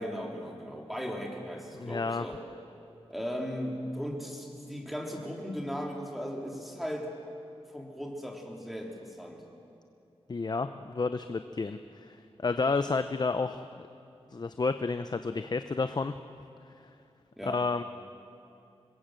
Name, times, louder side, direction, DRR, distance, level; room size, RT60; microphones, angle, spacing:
voice 1, 0.0-2.4 3.1-7.1 7.7-9.4 17.4-17.6, equal, ahead, 0 dB, 3.4 m, -37 dB
voice 2, 1.8-2.2 10.3-13.8 14.3-16.1 17.4-17.8, left 4 dB, 40° left, 10 dB, 0.6 m, -31 dB
26.0 x 21.0 x 7.6 m, 2.6 s
wide cardioid pair, 115°, 11 cm